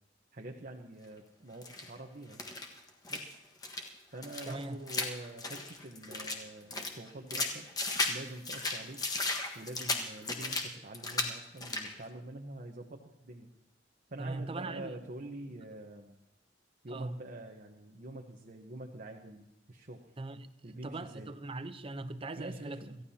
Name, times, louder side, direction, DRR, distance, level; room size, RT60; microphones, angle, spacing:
voice 1, 0.3-2.4 3.1-3.4 4.1-7.7 8.1-9.0 9.5-13.5 14.1-16.2 16.8-20.1 20.6-21.3 22.4-23.0, right 1 dB, 50° right, 1.0 m, -46 dB
sound 1, 1.6-1.9 2.3-3.3 3.6-3.9 4.2-6.4 6.7-8.2 8.4-10.7 10.9-11.3 11.6-11.9, left 2 dB, 20° left, 1.4 m, -35 dB
voice 2, 4.5-4.8 14.2-14.9 16.9-17.2 20.2-22.8, right 2 dB, 30° right, 0.7 m, -40 dB
27.0 x 14.5 x 2.8 m
head